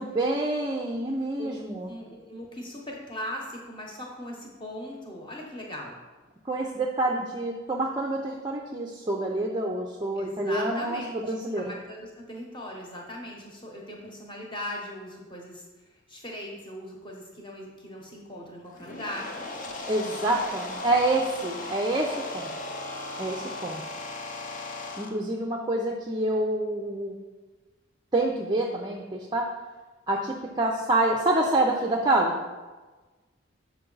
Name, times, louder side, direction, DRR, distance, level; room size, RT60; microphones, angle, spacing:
voice 1, 0.0-1.9 6.5-11.6 19.8-22.5 23.2-23.8 25.0-27.2 28.1-29.5 30.1-32.4, right 2 dB, 20° right, -1 dB, 0.4 m, -27 dB
voice 2, 1.8-6.0 10.1-19.3, left 1 dB, 25° left, -1 dB, 1.0 m, -39 dB
sound 1, 18.7-25.1, left 2 dB, 40° left, 0.6 m, -37 dB
6.8 x 4.5 x 3.9 m, 1.3 s
head